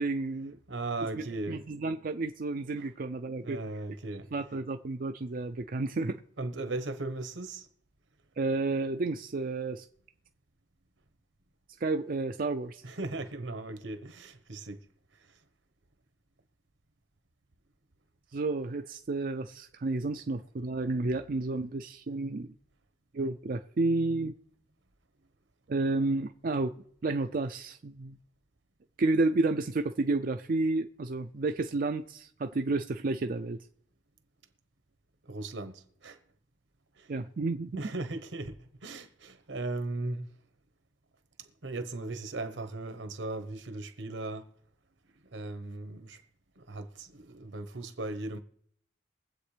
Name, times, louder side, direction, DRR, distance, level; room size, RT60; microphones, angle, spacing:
voice 1, 0.0-0.6 1.5-3.6 4.3-6.2 8.4-9.8 11.8-12.8 18.3-22.5 23.1-24.3 25.7-26.7 27.0-28.2 29.0-33.6 37.1-37.8, right 3 dB, 45° right, 0.4 m, -31 dB
voice 2, 0.7-1.7 2.8-2.9 3.4-4.3 6.4-7.7 12.8-14.8 35.2-36.2 37.0-37.1 37.8-40.3 41.4-44.5 45.3-46.2 46.6-48.4, right 2 dB, 80° right, 1.2 m, -37 dB
22.5 x 8.1 x 3.4 m
head